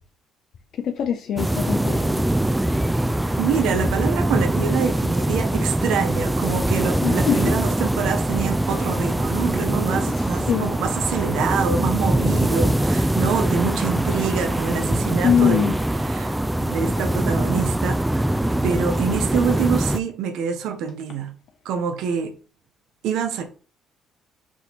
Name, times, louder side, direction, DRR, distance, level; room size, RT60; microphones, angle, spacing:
voice 1, 0.8-2.2 7.0-7.5 10.1-10.7 15.2-15.8, left 8 dB, 60° left, 0.5 m, -23 dB
sound 1, 1.4-20.0, right 1 dB, 10° right, 0.4 m, -22 dB
voice 2, 3.4-15.7 16.0-18.1 18.5-21.3 21.6-22.3 23.0-23.5, right 6 dB, 75° right, 0.7 m, -26 dB
4.6 x 2.7 x 4.2 m
supercardioid pair, 70°, 0 cm